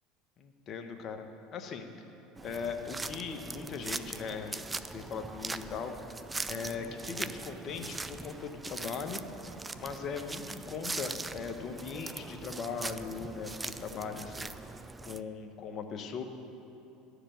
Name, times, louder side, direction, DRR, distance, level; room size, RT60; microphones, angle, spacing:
voice 1, 0.4-1.9 2.4-4.6 4.9-5.9 6.5-9.2 9.5-14.7 15.0-16.2, left 5 dB, 45° left, 6 dB, 0.9 m, -39 dB
sound 1, 2.4-15.2, right 3 dB, 15° right, 0.3 m, -41 dB
11.5 x 5.1 x 7.5 m, 2.9 s
hypercardioid pair, 80°, 0 cm